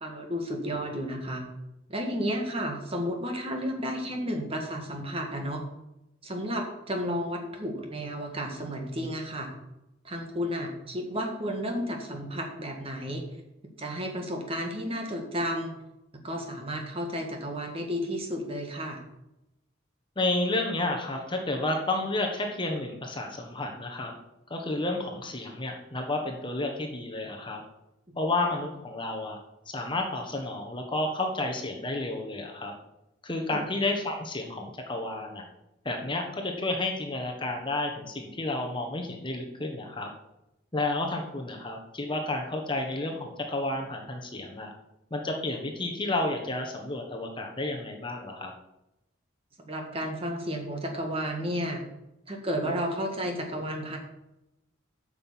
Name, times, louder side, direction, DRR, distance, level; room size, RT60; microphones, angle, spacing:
voice 1, 0.0-1.5 1.9-5.6 6.2-9.5 10.0-13.2 13.8-15.7 16.2-19.0 33.5-33.6 49.6-51.8 52.3-54.0, equal, 30° right, 2 dB, 1.8 m, -32 dB
voice 2, 20.2-24.1 24.5-27.6 28.2-29.4 29.7-32.7 33.2-35.4 35.8-40.1 40.7-44.7 45.1-48.5, left 2 dB, 25° left, 3 dB, 1.2 m, -31 dB
8.8 x 5.9 x 7.3 m, 0.90 s
head